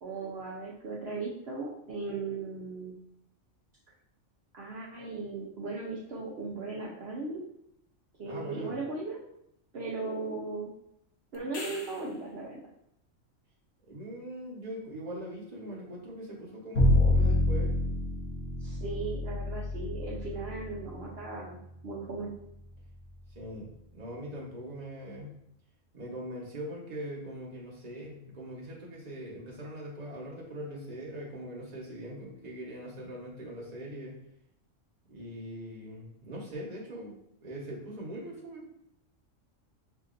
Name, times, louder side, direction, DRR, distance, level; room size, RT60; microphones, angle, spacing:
voice 1, 0.0-2.9 4.5-7.4 8.2-9.2 9.7-10.7 11.3-12.6 18.6-21.6 21.8-22.3, right 3 dB, 55° right, -4 dB, 0.9 m, -37 dB
voice 2, 8.2-8.7 13.8-17.7 23.3-25.3 25.9-34.2 35.1-38.7, equal, 35° right, -4 dB, 1.1 m, -41 dB
sound 1, 11.3-12.3 17.0-17.1, left 3 dB, 60° left, 0.9 m, -42 dB
Bowed string instrument, 16.7-22.9, left 2 dB, 90° left, 1.6 m, -28 dB
5.8 x 2.6 x 2.5 m, 0.76 s
omnidirectional pair, 1.3 m